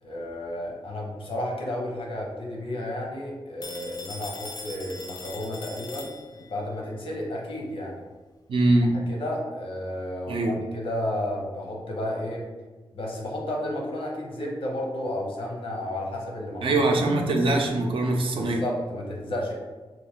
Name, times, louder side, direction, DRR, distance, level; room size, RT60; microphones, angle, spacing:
voice 1, 0.0-8.0 8.9-12.5 12.9-16.8 18.3-19.5, left 1 dB, 80° left, -2 dB, 0.8 m, -32 dB
Telephone, 3.6-6.6, left 3 dB, 45° left, 0.3 m, -41 dB
voice 2, 8.5-9.0 10.3-10.6 16.6-18.6, right 2 dB, 70° right, 1 dB, 0.5 m, -22 dB
3.1 x 2.5 x 3.5 m, 1.3 s
wide cardioid pair, 150°, 9 cm